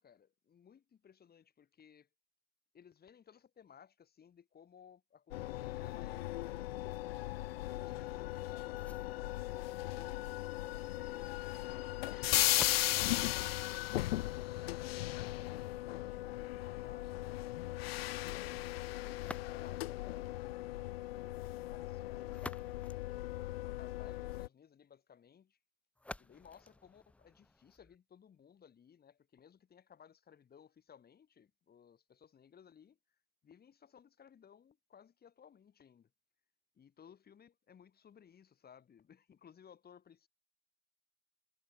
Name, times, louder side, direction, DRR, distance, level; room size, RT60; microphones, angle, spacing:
voice 1, 0.0-2.1 2.7-6.7 7.7-17.1 17.8-22.5 23.2-25.6 26.2-33.0 33.4-36.1 36.7-40.3, left 8 dB, 30° left, 2.7 m, -61 dB
sound 1, 5.3-24.5, left 16 dB, 80° left, 0.5 m, -37 dB
sound 2, 8.8-14.7 19.1-20.0 22.0-24.0 26.0-28.0, left 2 dB, 5° left, 0.4 m, -52 dB
hypercardioid pair, 75°, 30 cm